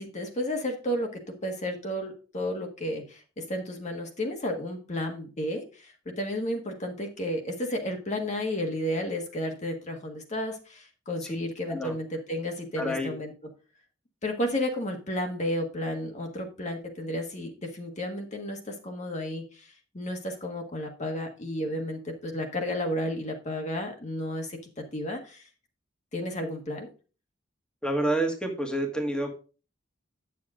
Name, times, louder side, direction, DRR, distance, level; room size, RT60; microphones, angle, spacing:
voice 1, 0.0-13.3 14.2-24.6 24.9-25.4 26.1-26.9, left 1 dB, 35° left, 2 dB, 1.5 m, -32 dB
voice 2, 12.8-13.1 27.8-29.3, right 1 dB, 5° left, 3 dB, 1.6 m, -28 dB
9.4 x 7.1 x 3.7 m, 0.35 s
head